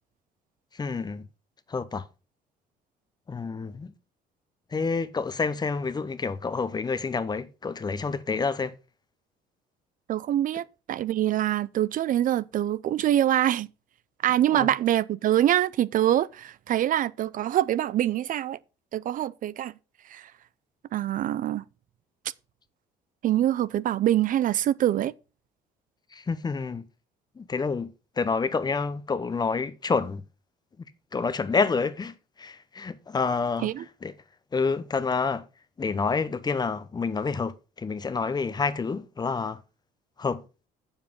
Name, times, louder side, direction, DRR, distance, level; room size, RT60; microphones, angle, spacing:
voice 1, 0.7-1.3 1.7-2.1 3.3-3.9 4.7-8.7 14.5-14.7 26.1-26.8 27.4-30.2 31.1-34.2 34.5-35.5 35.8-39.6 40.2-40.4, left 4 dB, 25° left, 0.8 m, -28 dB
voice 2, 10.1-13.7 14.2-18.6 18.9-19.7 20.1-20.3 20.9-21.6 23.2-25.1 33.6-33.8, right 12 dB, 55° right, 0.5 m, -24 dB
7.5 x 7.2 x 5.3 m
cardioid pair, 110°, 17 cm